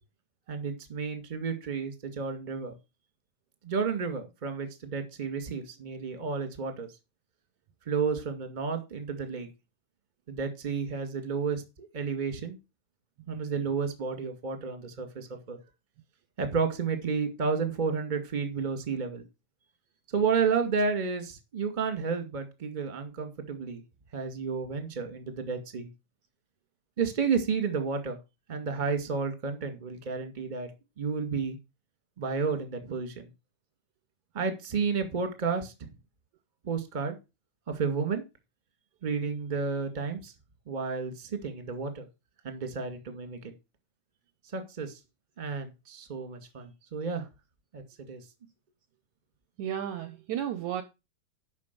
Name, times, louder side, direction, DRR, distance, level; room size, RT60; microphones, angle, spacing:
voice 1, 0.5-2.7 3.6-6.9 7.9-9.5 10.3-12.6 13.3-15.6 16.4-19.2 20.1-23.8 24.1-25.9 27.0-28.2 28.5-30.7 31.0-31.6 32.2-33.3 34.3-35.7 36.6-37.1 37.7-38.2 39.0-40.3 40.7-42.0 42.4-43.5 44.5-45.0 45.4-47.3 47.7-48.2, right 5 dB, 20° right, 1.6 m, -31 dB
voice 2, 49.6-50.8, right 10 dB, 70° right, 2.0 m, -33 dB
10.5 x 6.4 x 6.9 m
omnidirectional pair, 4.0 m